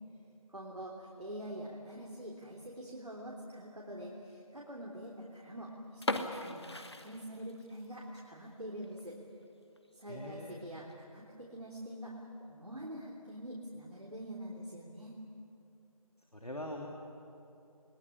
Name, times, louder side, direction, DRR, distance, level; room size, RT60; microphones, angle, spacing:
voice 1, 0.5-9.2 9.9-15.2, equal, 85° right, -3 dB, 3.3 m, -45 dB
sound 1, 5.9-7.9 8.2-8.3 8.8-9.0 9.4-9.5 9.8-9.9 10.6-10.9, left 2 dB, 45° left, 1.3 m, -38 dB
voice 2, 10.1-10.6 16.3-16.9, left 1 dB, 85° left, 0 dB, 2.8 m, -42 dB
21.0 x 18.0 x 10.0 m, 2.7 s
figure-of-eight pair, 170°, 19 cm